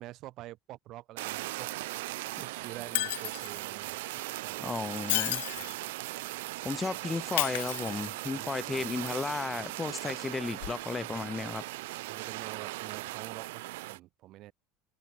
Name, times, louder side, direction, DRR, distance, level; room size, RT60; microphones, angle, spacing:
voice 1, 0.0-1.7 2.4-4.0 4.4-4.7 5.6-5.8 8.3-8.9 11.4-11.6 12.1-14.5, right 16 dB, 50° right, 7.0 m, -47 dB
Fire, 1.2-14.0, right 20 dB, 80° right, 5.5 m, -39 dB
Shatter, 2.9-3.6 4.8-5.8 7.4-8.4 10.6-10.7, left 19 dB, 85° left, 0.5 m, -32 dB
voice 2, 4.6-5.4 6.6-11.6, left 4 dB, 15° left, 2.8 m, -34 dB
supercardioid pair, 130°, 0 cm